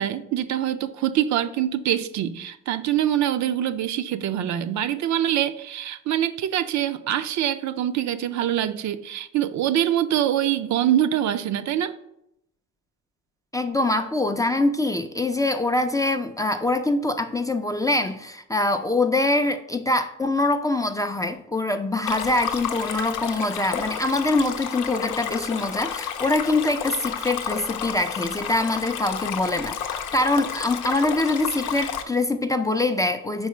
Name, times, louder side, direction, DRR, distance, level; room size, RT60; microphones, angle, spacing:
voice 1, 0.0-12.0, right 11 dB, 70° right, 0.5 m, -24 dB
voice 2, 13.5-33.5, left 2 dB, 10° left, 0.3 m, -24 dB
Stream, 22.1-32.0, left 8 dB, 90° left, 0.6 m, -31 dB
4.9 x 4.7 x 4.2 m
cardioid pair, 90°, 30 cm